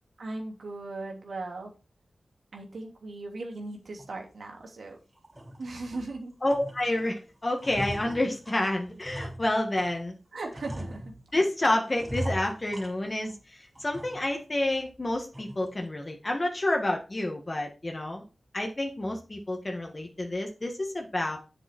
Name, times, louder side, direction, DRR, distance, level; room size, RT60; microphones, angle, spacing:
voice 1, 0.2-1.7 2.5-5.0 5.6-6.3 10.3-11.0, right 2 dB, 75° right, 1 dB, 3.0 m, -38 dB
sound 1, 4.0-4.1 4.6-4.7 5.2-6.1 6.5-7.1 7.4-10.0 10.5-11.5 11.9-13.4 13.7-14.4 14.7-14.8 15.3-15.7, equal, 25° right, 3.5 m, -39 dB
voice 2, 6.4-10.1 11.3-18.2 18.5-21.4, left 1 dB, 30° left, 2 dB, 1.9 m, -29 dB
7.9 x 6.7 x 4.6 m, 0.31 s
cardioid pair, 65°, 0 cm